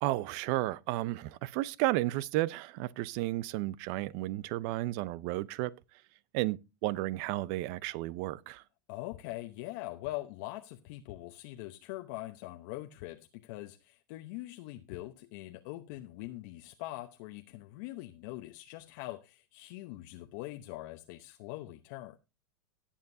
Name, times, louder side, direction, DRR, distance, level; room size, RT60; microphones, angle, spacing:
voice 1, 0.0-5.7 6.3-8.6, right 17 dB, 55° right, 0.6 m, -33 dB
voice 2, 8.9-22.2, left 17 dB, 60° left, 0.8 m, -43 dB
18.5 x 7.4 x 2.7 m
hypercardioid pair, 115°, 11 cm